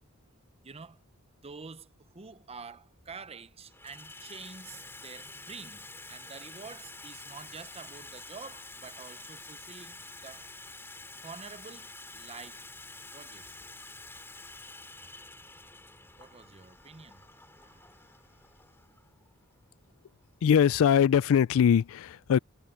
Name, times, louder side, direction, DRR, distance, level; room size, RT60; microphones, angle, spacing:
voice 1, 0.6-1.0 1.4-10.5 11.2-12.7 13.1-13.6 16.2-17.3 17.6-17.9, right 4 dB, 25° right, 0.8 m, -47 dB
Water tap faucet / Sink (filling or washing), 1.8-1.9 2.8-3.2 3.5-21.1, left 2 dB, 10° left, 2.5 m, -48 dB
sound 1, 13.3-18.6, equal, 5° right, 5.9 m, -67 dB
voice 2, 20.4-22.4, left 8 dB, 65° left, 0.3 m, -22 dB
head